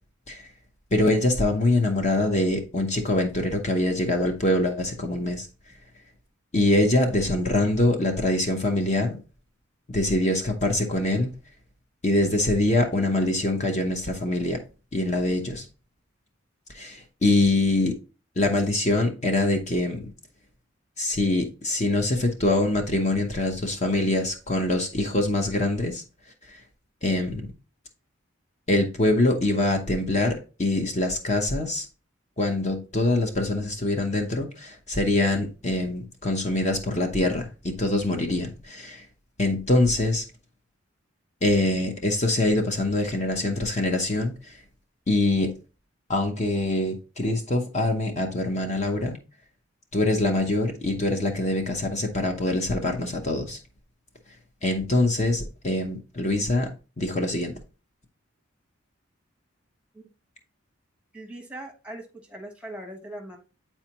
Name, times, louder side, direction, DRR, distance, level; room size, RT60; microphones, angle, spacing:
voice 1, 0.9-5.5 6.5-9.2 9.9-11.3 12.0-14.6 14.9-15.7 16.7-18.0 18.4-20.1 21.0-26.0 26.4-26.6 27.0-27.5 28.7-31.9 32.4-39.1 39.4-40.2 41.4-44.6 45.1-45.6 46.1-49.2 49.9-53.6 54.6-56.7 57.0-57.5, left 2 dB, 35° left, 0.8 m, -24 dB
voice 2, 61.1-63.4, right 1 dB, 5° right, 1.1 m, -40 dB
8.7 x 4.4 x 2.9 m
head